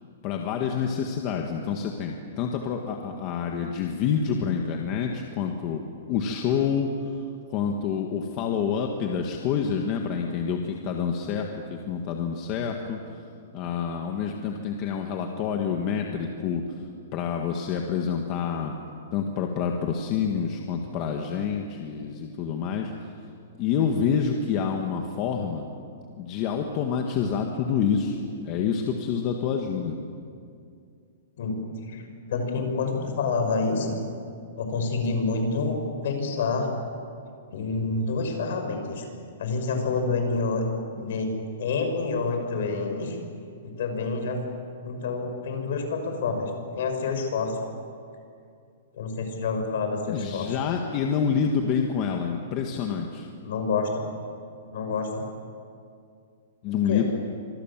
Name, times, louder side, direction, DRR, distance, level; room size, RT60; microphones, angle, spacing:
voice 1, 0.2-5.8 6.1-7.1 7.5-13.0 13.5-16.8 17.1-18.8 19.1-22.9 23.6-25.7 26.2-30.0 50.0-53.3 56.6-57.1, left 7 dB, 25° left, 2 dB, 1.7 m, -27 dB
voice 2, 31.9-34.0 34.6-36.7 37.5-39.0 39.4-40.6 40.9-43.2 43.6-44.4 44.8-47.6 48.9-50.5 53.4-54.0 54.7-55.2 56.9-57.1, left 4 dB, 55° left, 4 dB, 6.5 m, -28 dB
28.5 x 26.0 x 7.5 m, 2.4 s
hypercardioid pair, 175°, 0 cm